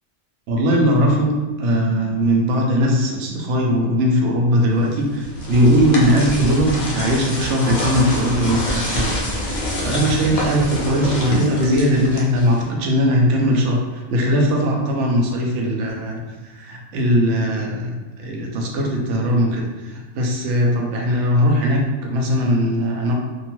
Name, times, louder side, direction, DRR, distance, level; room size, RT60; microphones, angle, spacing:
voice 1, 0.5-23.1, equal, 65° right, -1 dB, 0.8 m, -19 dB
sound 1, 5.0-12.8, left 1 dB, 55° left, 0.5 m, -26 dB
2.6 x 2.2 x 2.9 m, 1.2 s
omnidirectional pair, 1.4 m